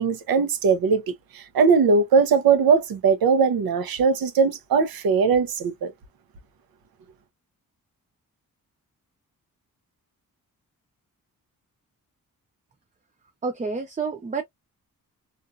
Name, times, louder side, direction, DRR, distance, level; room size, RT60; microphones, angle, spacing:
voice 1, 0.0-5.9, right 5 dB, 85° right, 0.7 m, -20 dB
voice 2, 13.4-14.4, right 4 dB, 20° right, 0.4 m, -28 dB
2.5 x 2.3 x 2.6 m
wide cardioid pair, 135°, 35 cm